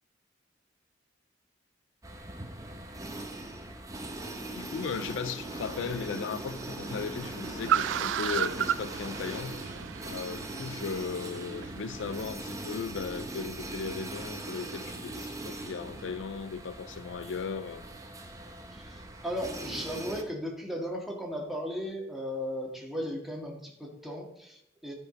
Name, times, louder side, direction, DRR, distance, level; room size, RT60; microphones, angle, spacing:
sound 1, 2.0-20.2, right 1 dB, 20° right, 1.1 m, -40 dB
voice 1, 4.6-9.6 10.0-17.8, left 6 dB, 75° left, 0.4 m, -37 dB
Car, 4.9-12.3, right 9 dB, 70° right, 0.3 m, -35 dB
voice 2, 18.7-24.9, equal, ahead, 2.0 m, -36 dB
12.5 x 5.3 x 5.1 m
head